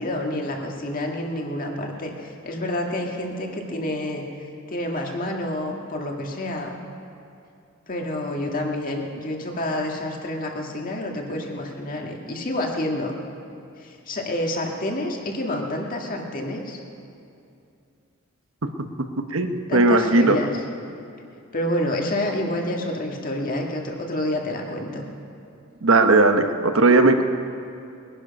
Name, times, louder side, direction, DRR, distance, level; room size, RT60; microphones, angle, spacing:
voice 1, 0.0-4.2 4.7-6.7 7.9-13.1 13.8-16.8 19.7-20.6 21.5-25.0, left 1 dB, 40° left, 1 dB, 1.8 m, -28 dB
voice 2, 19.2-20.4 25.8-27.2, right 2 dB, 70° right, 7 dB, 1.0 m, -17 dB
21.0 x 11.0 x 5.4 m, 2.6 s
head